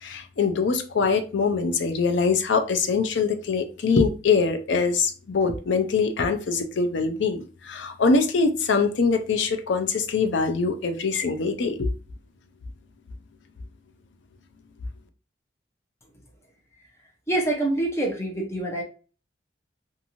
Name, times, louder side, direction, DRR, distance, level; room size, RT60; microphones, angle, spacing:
voice 1, 0.0-11.9, left 4 dB, 85° left, 7 dB, 0.5 m, -23 dB
voice 2, 17.3-18.8, right 2 dB, 15° left, 0 dB, 0.7 m, -25 dB
2.6 x 2.5 x 2.9 m, 0.35 s
head